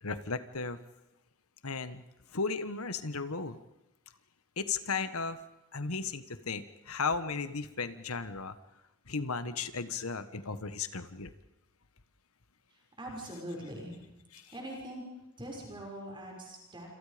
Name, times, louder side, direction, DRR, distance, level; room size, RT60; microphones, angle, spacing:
voice 1, 0.0-0.8 1.6-2.0 2.3-3.6 4.6-5.4 5.7-8.5 9.1-11.3 14.3-14.5, left 4 dB, 85° left, 11 dB, 1.5 m, -35 dB
voice 2, 12.7-14.0 14.5-15.0 15.4-16.9, right 1 dB, 25° right, -1 dB, 6.3 m, -42 dB
28.0 x 27.5 x 5.2 m, 0.95 s
head